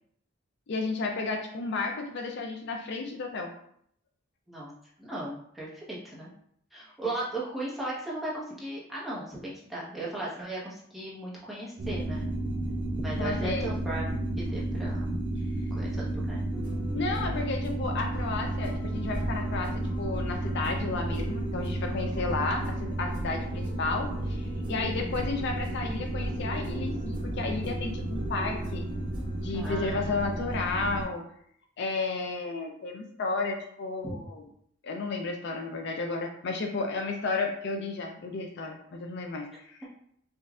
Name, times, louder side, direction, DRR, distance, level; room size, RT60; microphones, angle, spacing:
voice 1, 0.7-3.5 13.2-13.7 16.9-19.7 20.0-28.9 29.4-31.2 31.8-34.4 34.8-39.9, left 3 dB, 60° left, 3 dB, 0.4 m, -32 dB
voice 2, 5.0-6.3 6.7-12.3 13.0-14.0 14.4-15.2 15.7-16.4 17.2-17.3 25.0-25.3 29.5-30.2 34.0-34.2, right 1 dB, ahead, -8 dB, 1.1 m, -37 dB
sound 1, 11.8-31.0, right 1 dB, 65° right, 0.6 m, -32 dB
sound 2, 16.5-29.7, right 1 dB, 20° right, 1.3 m, -42 dB
5.2 x 2.5 x 2.4 m, 0.67 s
head